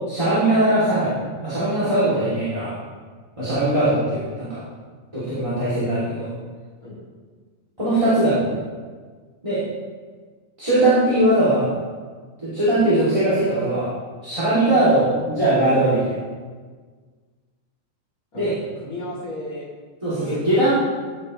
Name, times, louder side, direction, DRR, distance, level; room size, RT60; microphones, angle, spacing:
voice 1, 0.1-1.1 1.4-2.7 3.4-4.6 5.1-6.3 7.8-8.6 9.4-9.6 10.6-11.7 12.4-13.9 14.2-16.1 18.3-18.5 20.0-20.8, right 1 dB, 10° right, -12 dB, 3.1 m, -20 dB
voice 2, 18.3-19.7 20.2-20.8, left 1 dB, 30° left, -7 dB, 3.6 m, -34 dB
14.0 x 9.6 x 3.3 m, 1.5 s
omnidirectional pair, 3.3 m